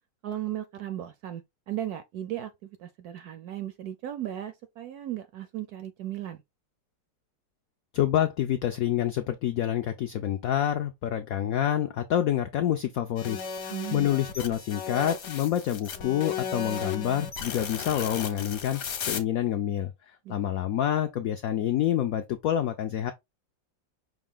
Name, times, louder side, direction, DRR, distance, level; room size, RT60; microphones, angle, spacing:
voice 1, 0.2-6.4 13.7-14.1 20.2-20.3, right 12 dB, 75° right, 0.9 m, -36 dB
voice 2, 7.9-23.1, left 11 dB, 80° left, 0.7 m, -27 dB
sound 1, 13.2-19.2, left 6 dB, 60° left, 1.2 m, -35 dB
5.6 x 2.4 x 3.6 m
omnidirectional pair, 2.0 m